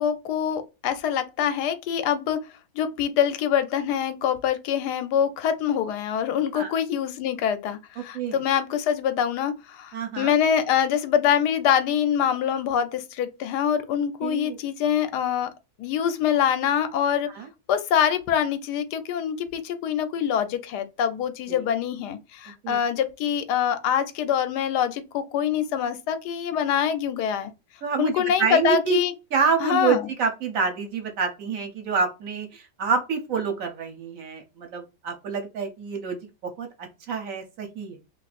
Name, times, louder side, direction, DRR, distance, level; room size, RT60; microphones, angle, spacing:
voice 1, 0.0-2.4 2.8-15.5 15.8-17.3 17.7-27.5 28.0-29.1 29.6-30.1, left 8 dB, 85° left, 1.2 m, -25 dB
voice 2, 8.0-8.4 9.9-10.3 14.2-14.6 17.3-17.5 22.6-22.8 27.8-29.0 29.3-38.0, right 5 dB, 60° right, 1.1 m, -27 dB
2.8 x 2.6 x 4.0 m
omnidirectional pair, 1.7 m